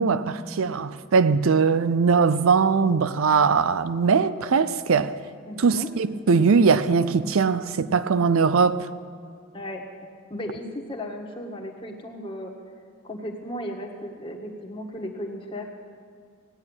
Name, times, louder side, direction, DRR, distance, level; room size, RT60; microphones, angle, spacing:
voice 1, 0.0-5.1 5.6-8.9, right 5 dB, 75° right, 0.5 m, -21 dB
voice 2, 5.4-5.9 9.5-12.5 13.0-15.8, left 1 dB, 25° left, 1.6 m, -35 dB
16.5 x 9.6 x 9.0 m
head